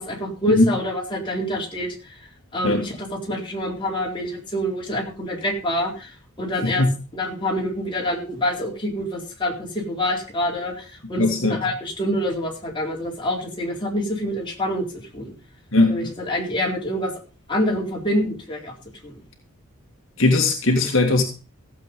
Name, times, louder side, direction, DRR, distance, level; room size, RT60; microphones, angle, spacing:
voice 1, 0.0-2.2 2.5-6.8 7.1-14.8 15.1-15.3 15.9-17.1 17.5-18.7 19.0-19.2, left 1 dB, 20° left, -2 dB, 4.1 m, -26 dB
voice 2, 11.2-11.6 15.7-16.1 20.2-21.2, left 2 dB, 60° left, 2 dB, 2.1 m, -19 dB
16.0 x 7.8 x 5.4 m, 0.36 s
head